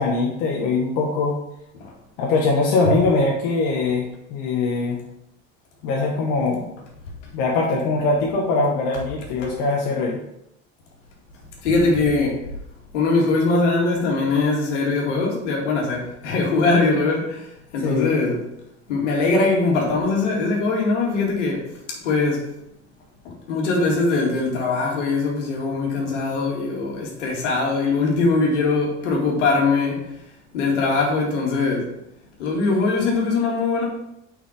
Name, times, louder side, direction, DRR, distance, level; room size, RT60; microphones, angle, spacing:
voice 1, 0.0-1.4 2.2-5.0 5.8-6.7 7.3-10.2 17.8-18.1, left 3 dB, 70° left, -2 dB, 1.4 m, -22 dB
voice 2, 11.6-12.4 12.9-17.5 17.7-18.4 18.9-22.5 23.2-30.1 30.5-31.9 32.4-33.9, left 3 dB, 85° left, -1 dB, 2.2 m, -21 dB
6.1 x 5.6 x 4.9 m, 0.81 s
hypercardioid pair, 80°, 35 cm